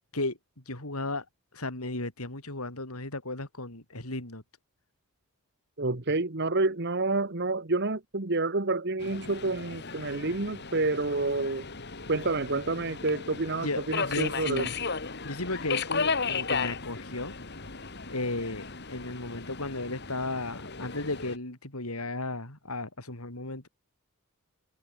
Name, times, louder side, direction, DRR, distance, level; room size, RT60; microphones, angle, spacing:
voice 1, 0.6-1.2 1.5-4.4 13.6-14.7 15.2-17.3 18.1-23.7, left 2 dB, 85° left, 5.3 m, -35 dB
voice 2, 5.8-11.6 12.1-14.7, right 3 dB, 50° right, 1.6 m, -29 dB
Subway metro underground, 9.0-21.4, left 5 dB, 50° left, 3.1 m, -35 dB
open air
head